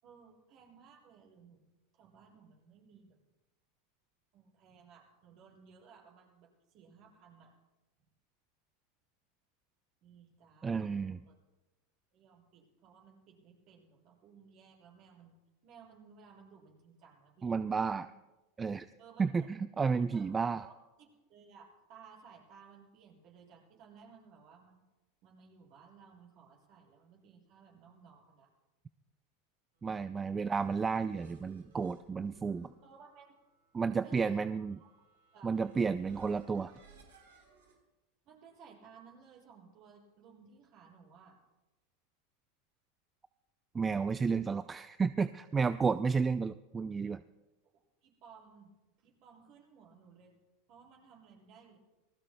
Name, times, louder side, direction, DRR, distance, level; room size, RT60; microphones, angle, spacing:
voice 1, 0.0-3.2 4.3-7.5 10.0-11.3 12.1-15.4 15.6-17.6 18.0-18.1 19.0-19.5 20.1-20.3 20.6-24.8 25.2-28.5 30.3-30.5 32.8-33.4 33.8-34.7 35.3-35.5 38.2-41.4 47.7-50.4 50.7-51.8, right 6 dB, 50° right, -1 dB, 6.5 m, -58 dB
voice 2, 10.6-11.2 17.4-18.1 18.6-18.9 19.2-20.6 29.8-32.7 33.7-34.8 35.4-36.7 43.7-47.2, right 5 dB, 20° right, 13 dB, 0.4 m, -32 dB
sound 1, 30.3-37.8, right 3 dB, 80° right, 4.3 m, -61 dB
27.5 x 19.5 x 2.2 m, 1.1 s
hypercardioid pair, 90°, 0 cm